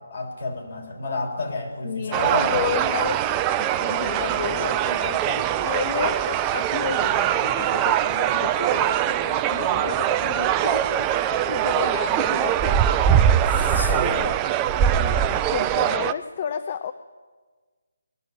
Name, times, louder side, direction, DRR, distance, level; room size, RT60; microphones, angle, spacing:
voice 1, 0.1-2.7 13.5-14.1, left 3 dB, 55° left, 0 dB, 3.9 m, -30 dB
voice 2, 1.8-13.2 14.0-14.4 15.0-16.9, left 8 dB, 35° left, 10 dB, 0.6 m, -32 dB
sound 1, 2.1-16.1, right 10 dB, 20° right, 0.4 m, -22 dB
20.0 x 7.2 x 9.9 m, 1.4 s
figure-of-eight pair, 145°, 0 cm